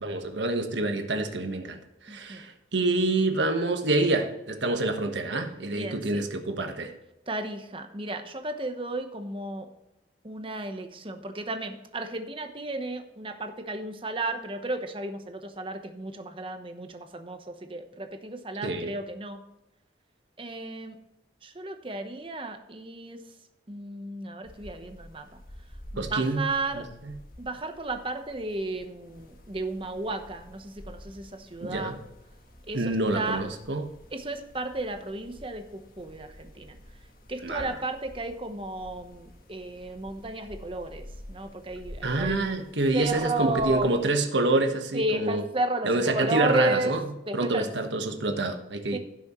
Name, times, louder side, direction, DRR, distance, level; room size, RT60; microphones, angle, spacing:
voice 1, 0.0-6.9 18.6-18.9 26.0-26.5 26.7-26.9 31.6-32.0 32.7-33.9 37.4-37.7 42.0-45.4 45.8-49.0, right 2 dB, 80° right, 5 dB, 1.4 m, -27 dB
voice 2, 2.1-2.4 5.7-6.2 7.3-9.7 10.2-19.4 20.4-21.0 21.4-23.2 23.7-25.4 25.9-26.8 27.4-32.0 32.7-33.4 34.1-35.6 36.0-36.8 37.3-41.0 41.3-42.4 42.9-43.9 44.9-46.9 47.3-47.7 48.9-49.0, right 2 dB, 30° right, 6 dB, 1.0 m, -33 dB
sound 1, 24.4-44.1, equal, 50° left, 1.6 m, -49 dB
16.0 x 6.3 x 3.1 m, 0.93 s
head